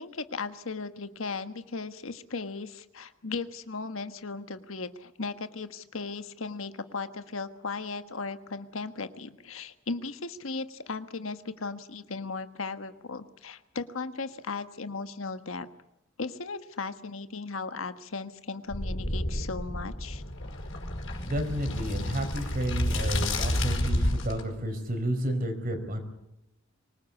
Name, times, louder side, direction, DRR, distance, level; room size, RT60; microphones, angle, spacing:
voice 1, 0.0-15.7 16.2-20.2, left 4 dB, 85° left, 10 dB, 1.4 m, -36 dB
sound 1, 18.7-24.4, left 1 dB, 65° left, 5.4 m, -30 dB
voice 2, 21.3-26.0, right 1 dB, 45° right, 6 dB, 4.7 m, -31 dB
25.0 x 19.0 x 8.5 m, 0.91 s
head